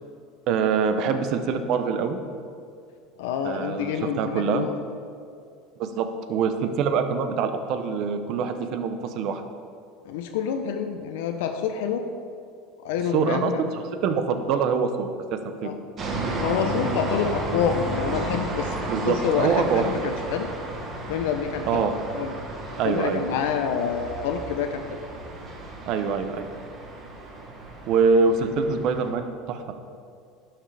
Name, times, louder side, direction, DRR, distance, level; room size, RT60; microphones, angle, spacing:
voice 1, 0.5-2.2 3.4-4.7 5.8-9.4 13.1-15.8 18.9-19.9 21.7-21.9 22.8-23.2 25.9-26.5 27.9-29.7, right 5 dB, 50° right, 8 dB, 0.6 m, -24 dB
voice 2, 3.2-4.7 10.0-12.0 12.8-13.6 15.6-15.8 16.4-20.5 21.1-22.3 22.8-24.8, left 7 dB, 80° left, 6 dB, 0.5 m, -27 dB
sound 1, 16.0-29.1, right 2 dB, 30° right, 1.2 m, -33 dB
11.5 x 5.8 x 3.4 m, 2.3 s
supercardioid pair, 145°, 0 cm